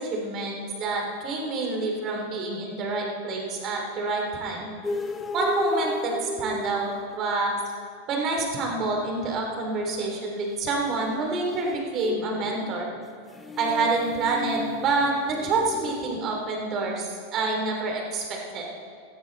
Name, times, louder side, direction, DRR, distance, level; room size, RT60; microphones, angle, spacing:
voice 1, 0.0-4.7 5.3-7.6 8.1-12.9 13.6-17.1 17.3-18.7, right 3 dB, 35° right, 0 dB, 3.5 m, -27 dB
sound 1, 4.8-7.5 11.0-16.2, left 3 dB, 15° left, 0.9 m, -34 dB
18.0 x 12.5 x 4.2 m, 2.2 s
supercardioid pair, 135°, 0 cm